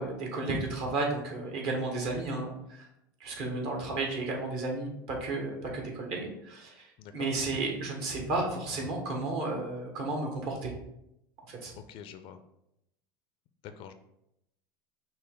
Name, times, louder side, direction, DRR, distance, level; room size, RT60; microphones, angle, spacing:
voice 1, 0.0-2.9 3.2-6.9 7.1-10.7 11.5-11.7, right 2 dB, 55° right, 1 dB, 1.2 m, -33 dB
voice 2, 11.7-12.4 13.6-13.9, left 8 dB, 50° left, 9 dB, 0.4 m, -45 dB
5.5 x 2.0 x 3.7 m, 0.83 s
hypercardioid pair, 80°, 12 cm